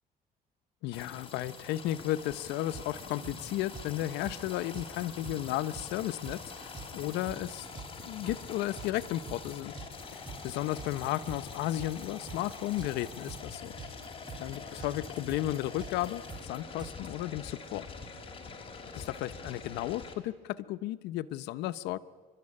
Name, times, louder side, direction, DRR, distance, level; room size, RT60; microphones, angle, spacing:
voice 1, 0.8-7.7 8.0-9.7 10.1-13.7 14.4-17.9 18.9-22.0, left 14 dB, 90° left, 14 dB, 0.7 m, -34 dB
sound 1, 0.9-20.1, left 4 dB, 30° left, 3.4 m, -45 dB
sound 2, 2.3-17.1, right 4 dB, 25° right, 2.3 m, -46 dB
29.5 x 12.5 x 9.8 m, 1.4 s
cardioid pair, 110°, 17 cm